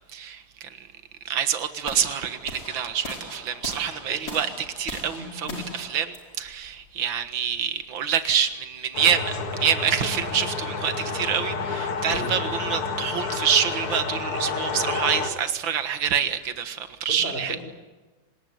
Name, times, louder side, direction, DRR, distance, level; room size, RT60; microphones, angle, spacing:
voice 1, 0.1-0.7 1.3-5.5 5.8-17.6, right 8 dB, 65° right, 10 dB, 2.3 m, -26 dB
sound 1, 1.9-7.9, left 1 dB, 45° left, 5.2 m, -40 dB
voice 2, 5.2-5.6 12.1-12.3 17.1-17.7, left 1 dB, 25° left, 5 dB, 4.8 m, -35 dB
sound 2, 8.9-15.3, left 4 dB, 80° left, 3.0 m, -30 dB
25.5 x 20.5 x 9.6 m, 1.2 s
omnidirectional pair, 2.4 m